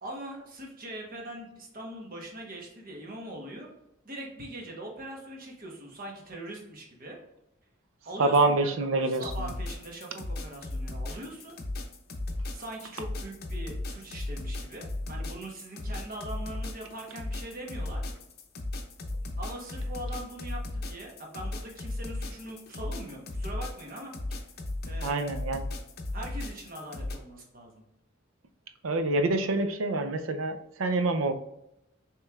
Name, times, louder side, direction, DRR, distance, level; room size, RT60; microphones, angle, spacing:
voice 1, 0.0-3.7 4.0-7.2 8.0-8.7 8.9-11.6 12.5-18.0 19.4-24.1 24.8-25.4 26.1-27.8, right 1 dB, 45° right, 0 dB, 1.0 m, -42 dB
voice 2, 8.2-9.5 25.0-25.7 28.8-31.3, right 2 dB, 70° right, 8 dB, 0.5 m, -26 dB
sound 1, 9.1-27.2, left 2 dB, 50° left, 0.6 m, -35 dB
6.3 x 3.1 x 2.3 m, 0.85 s
head